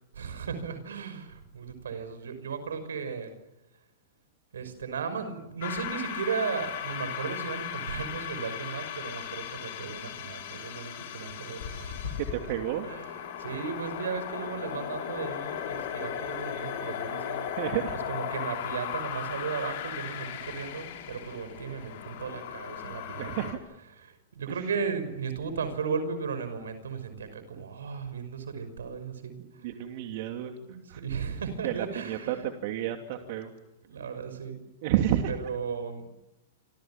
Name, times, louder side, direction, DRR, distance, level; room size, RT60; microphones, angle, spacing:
voice 1, 0.1-3.3 4.5-12.2 12.8-13.1 13.4-17.4 18.1-23.5 23.9-29.7 30.6-32.4 33.8-34.6 35.3-36.1, right 6 dB, 85° right, 10 dB, 5.8 m, -35 dB
sound 1, 5.6-23.5, left 9 dB, 60° left, 5.9 m, -37 dB
voice 2, 12.2-12.9 17.4-17.9 22.8-23.6 24.5-24.7 29.4-31.0 31.6-33.5 34.8-35.3, right 11 dB, 55° right, 5 dB, 2.7 m, -31 dB
28.5 x 26.0 x 7.4 m, 0.95 s
hypercardioid pair, 115°, 0 cm